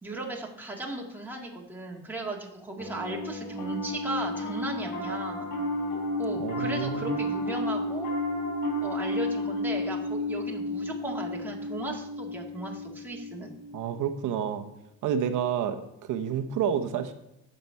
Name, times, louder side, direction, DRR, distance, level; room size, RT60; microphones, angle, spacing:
voice 1, 0.0-5.5 6.2-8.1 8.8-13.5, right 2 dB, 5° right, -2 dB, 1.9 m, -36 dB
Piano, 2.8-14.3, left 1 dB, 90° left, 3.4 m, -32 dB
voice 2, 6.4-7.2 13.7-14.6 15.0-17.1, right 8 dB, 85° right, 8 dB, 1.0 m, -29 dB
9.9 x 6.7 x 4.6 m, 0.88 s
cardioid pair, 90°, 30 cm